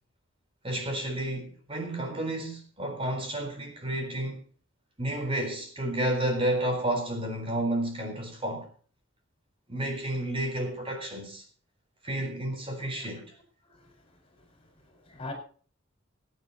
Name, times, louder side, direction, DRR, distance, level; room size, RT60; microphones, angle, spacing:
voice 1, 0.6-4.4 5.0-8.7 9.7-11.4 12.0-13.3, right 1 dB, 30° right, 4.0 m, -31 dB
voice 2, 13.7-15.3, left 2 dB, 30° left, 4.7 m, -44 dB
21.0 x 9.6 x 4.0 m
head